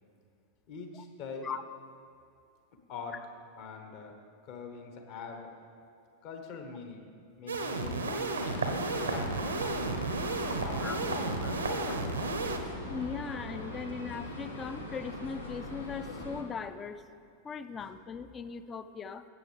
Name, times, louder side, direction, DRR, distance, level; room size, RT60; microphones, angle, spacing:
voice 1, 0.7-1.5 2.9-3.2 3.6-4.2 4.4-5.6 6.2-7.0 7.4-8.4 8.9-9.5 9.7-10.9 11.2-12.4 17.8-18.0, left 4 dB, 45° left, 4 dB, 1.2 m, -44 dB
sound 1, 7.5-12.6, right 3 dB, 75° right, 0.8 m, -33 dB
sound 2, 8.4-16.4, left 1 dB, 75° left, 1.2 m, -40 dB
voice 2, 12.9-17.0 17.4-19.3, left 6 dB, 25° left, 12 dB, 0.4 m, -39 dB
15.5 x 8.3 x 3.3 m, 2.4 s
figure-of-eight pair, 90°, 0 cm